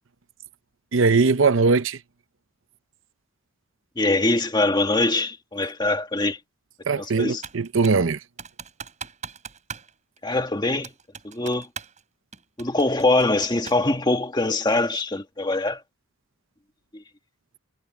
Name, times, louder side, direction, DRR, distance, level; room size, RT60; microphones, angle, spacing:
voice 1, 0.9-2.0 6.9-8.2, right 4 dB, 65° right, 0.7 m, -20 dB
voice 2, 4.0-6.4 7.0-7.4 10.2-10.9 11.2-11.7 12.6-15.8 16.9-17.0, left 2 dB, 20° left, 1.6 m, -23 dB
Computer keyboard, 7.4-8.1 8.4-9.9 10.2-10.3 10.8-12.0 12.3-13.9, right 6 dB, 35° right, 5.4 m, -39 dB
head